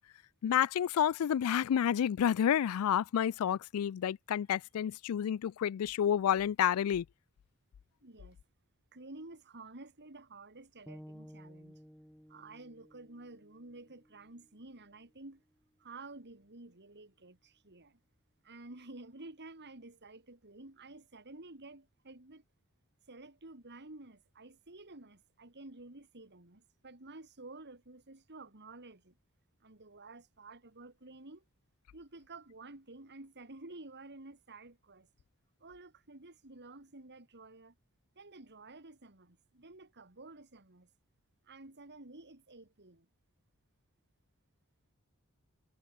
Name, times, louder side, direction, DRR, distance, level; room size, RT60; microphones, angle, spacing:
voice 1, 0.4-7.1, left 9 dB, 70° left, 0.3 m, -29 dB
voice 2, 8.0-8.4 8.9-11.8 12.3-15.4 15.8-18.0 18.4-22.4 23.1-29.2 29.6-31.4 31.9-35.1 35.6-37.7 38.1-40.9 41.4-43.1, right 2 dB, 50° right, 3.2 m, -51 dB
sound 1, 10.9-15.0, equal, ahead, 2.3 m, -55 dB
head